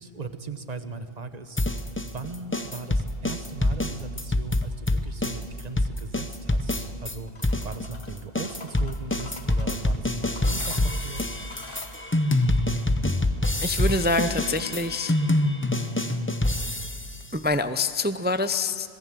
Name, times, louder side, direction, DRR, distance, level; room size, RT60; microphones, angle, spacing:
voice 1, 0.0-11.2, right 4 dB, 40° right, 9 dB, 1.2 m, -39 dB
sound 1, 1.6-7.1 7.4-17.2, left 1 dB, 15° left, 0.7 m, -26 dB
sound 2, 7.3-8.1 8.4-9.8 10.2-12.0, left 3 dB, 50° left, 1.9 m, -44 dB
voice 2, 13.6-15.1 17.3-18.9, left 2 dB, 15° right, 10 dB, 0.3 m, -25 dB
26.0 x 19.0 x 7.5 m, 2.3 s
omnidirectional pair, 1.1 m